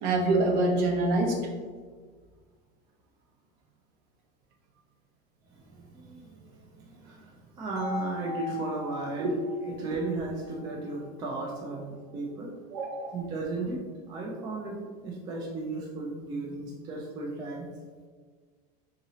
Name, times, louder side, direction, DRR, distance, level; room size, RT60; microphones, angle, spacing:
voice 1, 0.0-1.5 9.2-9.3 12.7-13.2, right 2 dB, 60° right, 1 dB, 0.8 m, -26 dB
voice 2, 5.7-6.6 6.9-9.3 9.8-12.5 13.1-13.8 14.1-14.8 15.0-17.7, right 3 dB, 20° right, -2 dB, 0.3 m, -35 dB
sound 1, 7.8-11.7, left 4 dB, 40° left, 1.1 m, -41 dB
3.8 x 2.9 x 2.7 m, 1.5 s
supercardioid pair, 165°, 21 cm